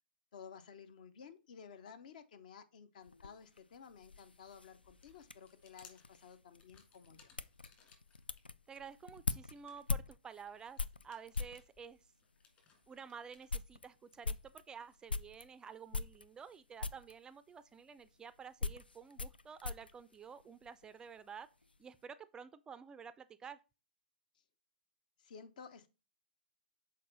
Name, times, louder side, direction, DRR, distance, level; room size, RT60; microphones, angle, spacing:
voice 1, 0.3-7.3 24.3-24.4 25.2-25.9, left 6 dB, 55° left, 0.8 m, -54 dB
sound 1, 3.0-11.7 12.4-12.5 12.9-13.0 13.3-15.5 15.9-16.5 16.8-17.2 18.0-20.9 21.2-21.8, left 3 dB, 90° left, 0.4 m, -42 dB
sound 2, 4.8-8.4 8.9-13.5, left 6 dB, 30° left, 1.8 m, -65 dB
voice 2, 8.7-10.8 11.0-12.1 12.9-21.5 21.8-23.6, right 6 dB, 15° right, 0.3 m, -51 dB
6.5 x 4.2 x 3.9 m
figure-of-eight pair, 110°, 5 cm